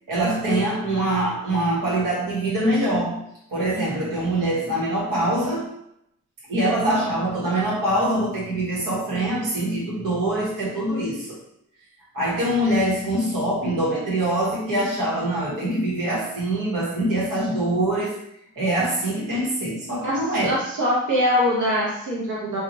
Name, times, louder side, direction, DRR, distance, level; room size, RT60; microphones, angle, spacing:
voice 1, 0.1-3.2 3.5-5.7 6.5-11.4 12.1-18.1 18.6-20.5, right 1 dB, 85° right, -5 dB, 1.3 m, -24 dB
voice 2, 20.0-22.6, left 1 dB, 65° right, -6 dB, 0.7 m, -23 dB
2.9 x 2.4 x 2.6 m, 0.76 s
cardioid pair, 120°, 32 cm